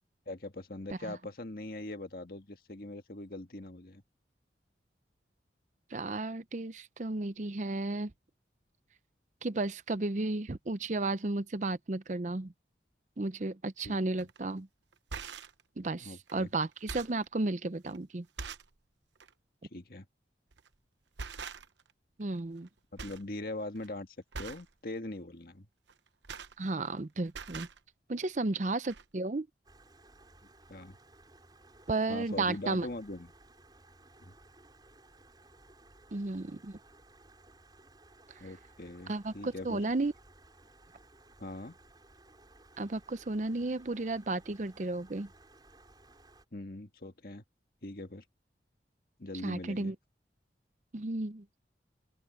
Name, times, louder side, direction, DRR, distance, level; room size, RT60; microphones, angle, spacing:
voice 1, 0.3-4.0 13.8-14.0 16.0-16.5 19.7-20.0 22.9-25.7 30.7-31.0 32.1-33.3 34.2-34.3 38.4-39.8 41.4-41.8 46.5-47.4 47.8-48.2 49.2-49.9, left 2 dB, 55° left, 1.7 m, -42 dB
voice 2, 5.9-8.1 9.4-12.5 13.2-14.7 15.8-18.3 22.2-22.7 26.6-27.7 28.1-29.5 31.9-32.9 36.1-36.8 39.1-40.1 42.8-45.3 49.4-50.0 50.9-51.6, right 2 dB, 45° right, 0.6 m, -33 dB
sound 1, 14.2-14.4 14.9-15.6 16.3-16.4 16.7-17.3 17.9-18.0 18.4-18.8 19.2-19.3 20.5-20.7 21.2-21.9 22.2-22.7 23.0-23.3 23.6-23.9 24.3-24.7 25.9-27.0 27.3-27.8 28.6-28.7 28.9-29.0, right 5 dB, 90° right, 1.0 m, -43 dB
Stream, 29.6-46.4, right 2 dB, 25° right, 7.0 m, -59 dB
open air
head